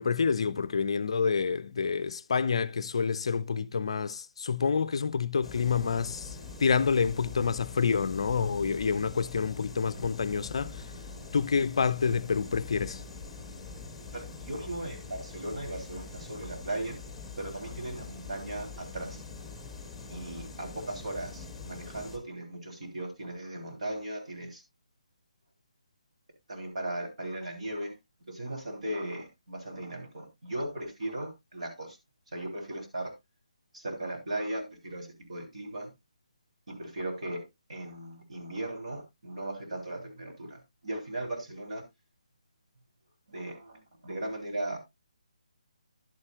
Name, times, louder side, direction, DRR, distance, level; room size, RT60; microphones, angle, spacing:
voice 1, 0.0-10.9 11.3-13.0, left 5 dB, 50° left, 0.4 m, -28 dB
sound 1, 5.4-22.2, left 4 dB, 5° left, 1.5 m, -44 dB
voice 2, 14.1-17.0 17.4-19.2 20.1-24.6 26.5-27.9 28.3-32.0 32.3-33.1 33.7-35.9 36.7-37.4 37.7-41.8 43.3-44.8, right 1 dB, 60° right, 3.4 m, -37 dB
11.0 x 9.5 x 2.4 m
figure-of-eight pair, 145°, 4 cm